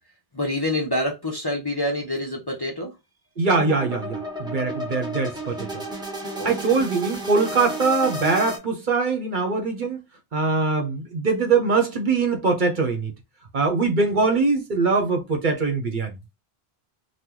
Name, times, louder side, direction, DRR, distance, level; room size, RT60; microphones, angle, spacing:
voice 1, 0.3-2.9 6.4-6.8, left 1 dB, 25° left, 0.7 m, -27 dB
voice 2, 3.4-5.8 6.4-10.0 10.3-13.1 13.5-16.1, right 4 dB, 55° right, 0.9 m, -22 dB
sound 1, 3.5-8.6, right 1 dB, 5° right, 0.8 m, -32 dB
3.0 x 2.3 x 3.7 m
omnidirectional pair, 1.0 m